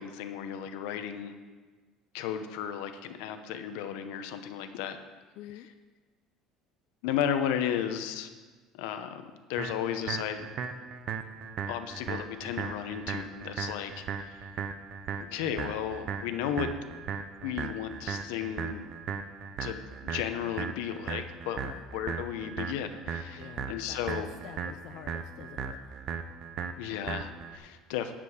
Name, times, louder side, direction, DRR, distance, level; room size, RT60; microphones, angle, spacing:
voice 1, 0.0-1.3 2.1-5.0 7.0-8.3 8.7-9.2 9.5-10.5 11.7-14.5 15.3-16.7 17.4-18.8 19.6-21.6 21.9-24.3 26.8-28.1, left 9 dB, 85° left, 8 dB, 0.8 m, -34 dB
voice 2, 5.4-5.7 21.6-21.8 23.4-26.1, left 12 dB, 50° left, 8 dB, 0.4 m, -47 dB
sound 1, 9.6-27.6, right 6 dB, 35° right, 0.5 m, -37 dB
10.0 x 5.2 x 7.1 m, 1.4 s
cardioid pair, 175°, 0 cm